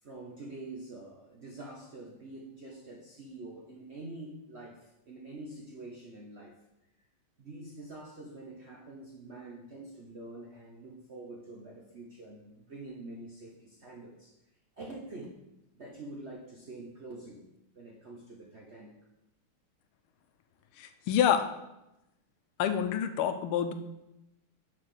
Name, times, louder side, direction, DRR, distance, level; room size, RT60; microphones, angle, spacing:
voice 1, 0.0-6.5 7.4-14.3 14.8-15.3 15.7-17.4 17.7-18.9, right 2 dB, 50° right, -2 dB, 0.8 m, -46 dB
voice 2, 20.8-21.4 22.6-23.7, left 9 dB, 90° left, 9 dB, 1.5 m, -27 dB
6.0 x 4.9 x 6.4 m, 0.89 s
omnidirectional pair, 2.4 m